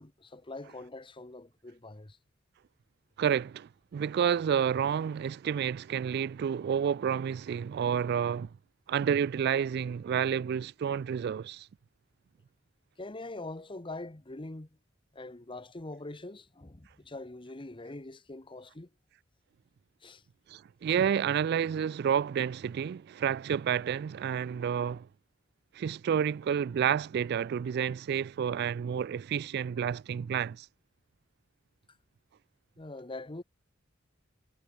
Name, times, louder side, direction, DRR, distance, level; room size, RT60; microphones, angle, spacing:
voice 1, 0.0-2.2 13.0-14.7 15.1-18.9 20.0-20.2 32.8-33.4, left 2 dB, 25° left, 1.1 m, -43 dB
voice 2, 3.2-8.5 8.9-11.7 20.5-25.1 25.7-30.7, right 8 dB, 55° right, 0.3 m, -30 dB
head